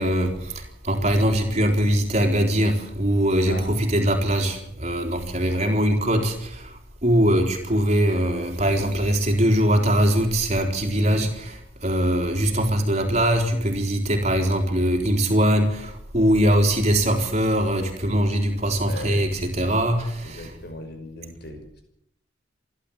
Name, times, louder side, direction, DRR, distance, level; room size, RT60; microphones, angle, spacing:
voice 1, 0.0-11.5 11.8-20.5, equal, 35° right, 4 dB, 3.8 m, -22 dB
voice 2, 10.9-11.3 18.8-19.3 20.2-21.8, left 1 dB, 55° left, 5 dB, 5.6 m, -38 dB
27.0 x 12.0 x 8.8 m, 0.76 s
head